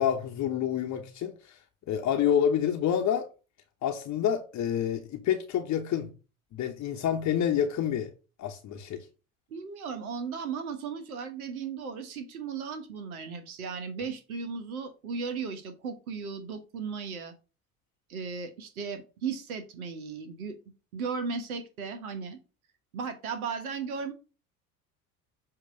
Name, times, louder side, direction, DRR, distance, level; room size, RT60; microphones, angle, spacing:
voice 1, 0.0-1.6 1.9-3.3 3.8-6.1 6.5-8.1 8.4-9.0, left 9 dB, 40° left, 1.0 m, -28 dB
voice 2, 9.5-17.3 18.1-20.6 20.9-22.4 22.9-24.1, right 5 dB, 75° right, 1.3 m, -36 dB
7.7 x 2.9 x 5.2 m
figure-of-eight pair, 65°, 43 cm